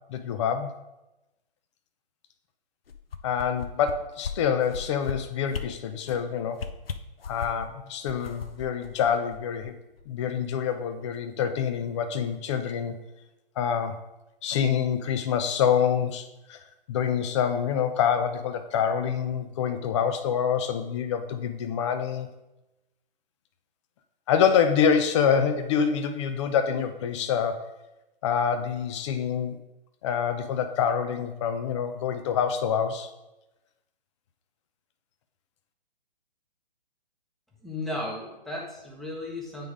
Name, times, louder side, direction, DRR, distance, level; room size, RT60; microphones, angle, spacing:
voice 1, 0.1-0.7 3.2-6.6 7.3-9.8 10.1-13.0 13.6-14.0 14.4-16.6 16.9-22.3 24.3-27.7 28.2-29.6 30.0-33.1, left 7 dB, 30° left, 8 dB, 0.6 m, -26 dB
sound 1, 2.9-3.9 4.2-4.3 4.7-5.1 5.5-5.6 6.0-6.2 6.5-7.7 8.1-9.7 10.0-10.1, left 6 dB, 80° left, 0.7 m, -35 dB
voice 2, 37.6-39.7, left 1 dB, ahead, -2 dB, 1.0 m, -35 dB
9.0 x 3.7 x 4.9 m, 0.96 s
hypercardioid pair, 135°, 29 cm